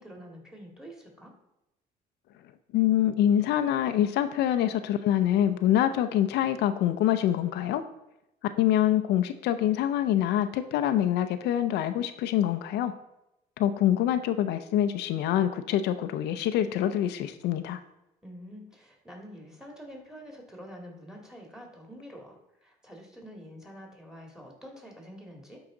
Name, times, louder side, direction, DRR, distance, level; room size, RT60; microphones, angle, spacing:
voice 1, 0.0-1.3 18.2-25.6, equal, 5° right, 1 dB, 2.0 m, -47 dB
voice 2, 2.7-7.8 8.6-12.9 13.6-17.8, left 11 dB, 80° left, 9 dB, 0.5 m, -25 dB
12.0 x 4.8 x 3.8 m, 0.92 s
cardioid pair, 110°, 17 cm